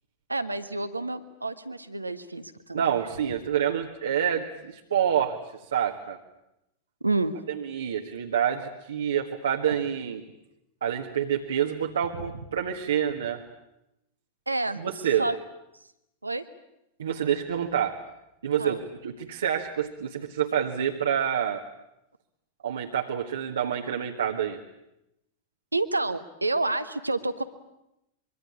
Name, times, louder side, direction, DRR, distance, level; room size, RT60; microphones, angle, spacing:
voice 1, 0.3-2.9 7.0-7.4 14.5-14.8 15.2-15.3 16.2-16.4 18.6-18.8 25.7-27.4, right 2 dB, 85° right, 10 dB, 1.4 m, -29 dB
voice 2, 2.7-5.4 5.7-6.2 7.5-10.2 10.8-13.4 14.8-15.3 17.0-18.0 18.4-21.6 22.6-24.6, right 9 dB, 65° right, 2 dB, 1.7 m, -27 dB
25.5 x 23.5 x 8.6 m, 0.86 s
figure-of-eight pair, 90°, 0 cm